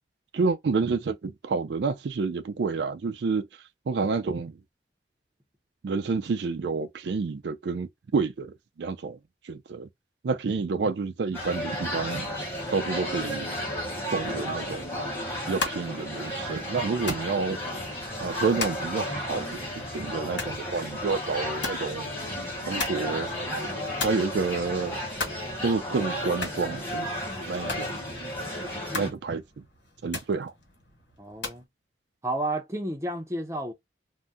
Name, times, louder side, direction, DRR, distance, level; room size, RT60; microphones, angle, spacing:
voice 1, 0.3-4.6 5.8-9.2 9.4-9.9 10.2-13.6 14.1-14.9 15.5-17.6 18.2-19.6 19.9-22.2 22.6-23.3 24.0-25.0 25.6-27.1 27.4-27.9 28.9-29.4 30.0-30.5, right 4 dB, 70° right, 0.4 m, -29 dB
sound 1, 11.3-29.1, equal, 15° left, 1.2 m, -33 dB
sound 2, 15.4-31.7, left 3 dB, 80° left, 1.5 m, -40 dB
voice 2, 31.2-31.6 32.2-33.7, right 1 dB, 15° right, 0.5 m, -31 dB
2.6 x 2.1 x 3.4 m
head